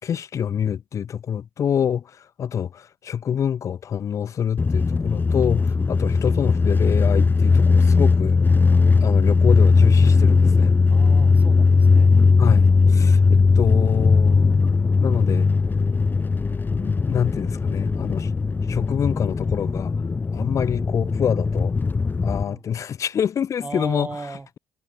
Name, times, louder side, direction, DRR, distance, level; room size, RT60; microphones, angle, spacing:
voice 1, 0.0-8.4 9.0-10.8 12.4-14.6 15.0-15.5 16.0-16.1 16.7-18.3 18.7-19.9 20.3-21.7 22.2-24.1, left 8 dB, 55° left, 2.3 m, -26 dB
sound 1, 4.6-22.4, left 4 dB, 30° left, 1.4 m, -18 dB
voice 2, 5.8-6.1 10.9-12.1 22.5-22.6 23.6-24.5, right 3 dB, 25° right, 4.1 m, -36 dB
supercardioid pair, 60°, 6 cm